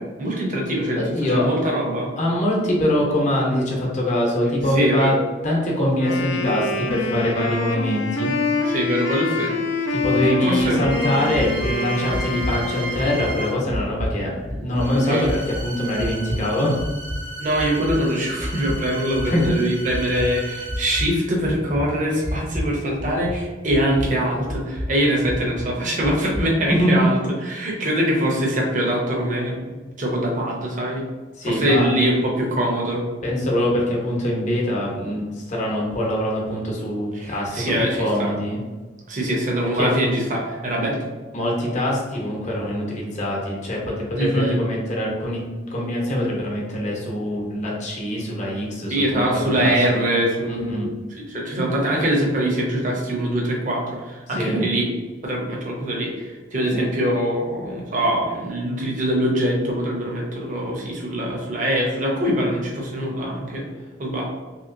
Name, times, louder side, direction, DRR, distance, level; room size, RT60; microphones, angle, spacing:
voice 1, 0.0-2.1 4.6-5.1 8.6-9.5 10.2-10.8 15.0-15.3 17.4-31.0 31.4-33.0 37.1-38.4 39.1-41.1 44.2-44.6 48.9-50.8 51.1-54.9 55.2-63.6 64.0-64.2, right 1 dB, 45° right, -2 dB, 0.7 m, -23 dB
voice 2, 1.0-1.5 2.2-5.1 5.4-8.3 9.9-16.8 19.3-19.5 26.7-27.0 31.4-31.9 33.2-37.6 38.0-38.6 39.8-39.9 41.3-45.4 45.7-50.1 50.5-50.9 54.3-54.6, left 1 dB, 40° left, -3 dB, 0.8 m, -23 dB
Wind instrument woodwind instrument, 6.0-13.7, left 3 dB, 70° left, 0.4 m, -26 dB
sound 1, 10.6-11.0 11.3-11.7 12.1-12.6 12.9-13.3 13.7-14.2 14.5-14.9 15.2-15.6 16.0-16.4 16.8-17.2 17.6-18.0 18.4-18.8 19.1-19.5 19.9-20.3 20.7-21.1 21.4-21.8 22.2-22.7 23.0-23.4 23.7-24.1 24.5-24.9 25.3-25.6 26.0-26.4, equal, ahead, 0.3 m, -29 dB
sound 2, 10.9-13.7 14.7-21.3 22.2-22.4, right 2 dB, 75° right, 0.9 m, -35 dB
2.9 x 2.9 x 2.5 m, 1.3 s
head